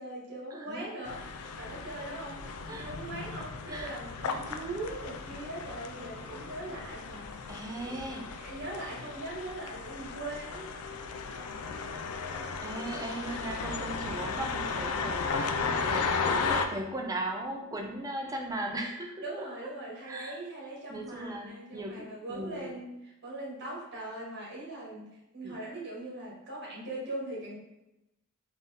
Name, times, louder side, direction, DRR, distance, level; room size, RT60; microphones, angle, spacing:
voice 1, 0.0-2.4 2.7-10.7 19.2-27.6, right 2 dB, 50° right, -4 dB, 1.3 m, -41 dB
voice 2, 0.5-0.9 2.7-2.9 3.7-4.0 7.5-8.3 12.6-19.5 20.1-20.4 20.9-22.7 25.4-25.6, right 1 dB, 15° right, 1 dB, 0.5 m, -38 dB
sound 1, 1.0-16.7, left 4 dB, 75° left, 0.4 m, -35 dB
3.9 x 2.6 x 3.4 m, 0.91 s
head